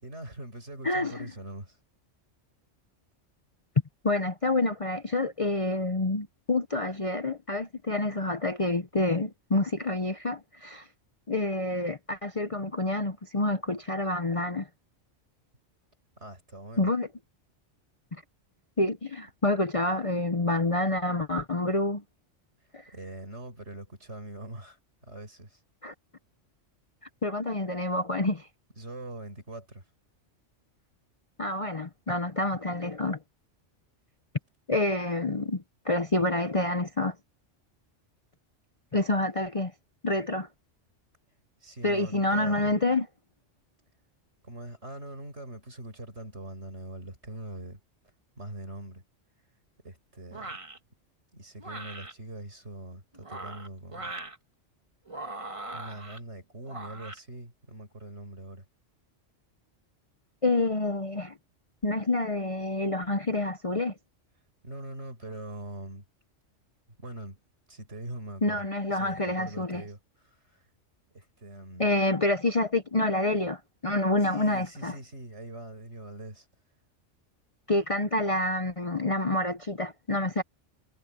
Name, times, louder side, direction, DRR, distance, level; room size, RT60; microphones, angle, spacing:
voice 1, 0.0-1.8 16.2-16.9 22.9-25.6 28.8-29.8 41.6-42.8 44.4-47.8 48.4-49.0 49.8-50.6 51.3-54.1 55.7-58.6 64.6-66.1 67.0-67.4 67.7-68.7 68.9-70.6 71.1-71.9 74.2-76.5, right 1 dB, 65° right, 6.3 m, -42 dB
voice 2, 0.8-1.3 4.0-10.9 11.3-14.7 16.8-17.1 18.8-22.0 22.7-22.8 25.8-25.9 27.2-28.5 31.4-33.2 34.7-37.1 38.9-39.7 40.0-40.5 41.8-43.1 60.4-61.3 61.8-63.9 68.4-69.8 71.8-74.9 77.7-80.4, left 2 dB, 30° left, 0.8 m, -28 dB
sound 1, 50.3-50.8 51.6-52.1 53.1-54.4 55.1-56.2 56.7-57.2, right 2 dB, 25° right, 1.5 m, -40 dB
omnidirectional pair, 1.3 m